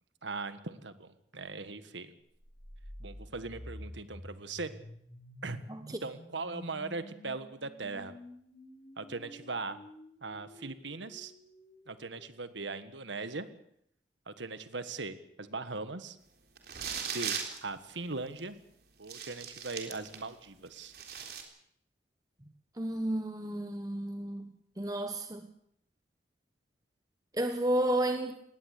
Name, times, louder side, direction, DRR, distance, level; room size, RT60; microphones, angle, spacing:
voice 1, 0.2-2.1 3.0-4.7 5.4-5.6 6.0-8.2 9.0-9.8 10.2-11.3 11.9-13.5 14.3-16.2 17.1-18.6 19.0-20.9, right 3 dB, 75° right, 12 dB, 1.6 m, -39 dB
sound 1, 2.3-12.2, equal, 15° left, 5.9 m, -50 dB
sound 2, 16.6-17.6 18.4-18.5 19.0-20.3 20.7-21.4, right 7 dB, 55° right, 3.8 m, -38 dB
voice 2, 22.8-24.5 24.8-25.5 27.3-28.3, right 1 dB, 20° right, 7 dB, 1.1 m, -31 dB
19.5 x 18.5 x 8.4 m, 0.70 s
head